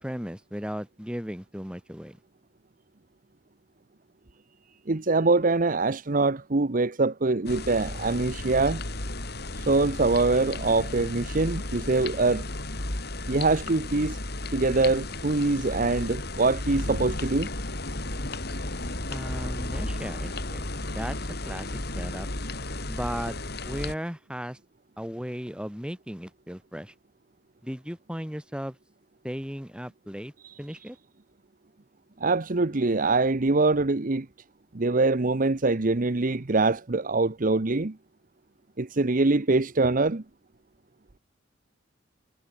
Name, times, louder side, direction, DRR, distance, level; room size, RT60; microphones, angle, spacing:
voice 1, 0.0-2.2 19.1-21.2 21.5-21.7 22.0-22.3 22.9-23.4 23.6-24.6 25.0-26.9 27.6-28.8 29.2-30.3 30.6-31.0, equal, 5° right, 5.0 m, -36 dB
voice 2, 4.9-8.8 9.7-12.4 13.3-14.2 14.5-17.5 30.4-30.5 32.2-34.3 34.7-37.9 38.8-40.2, right 3 dB, 45° right, 0.9 m, -24 dB
sound 1, 7.5-24.0, left 2 dB, 60° left, 4.7 m, -34 dB
head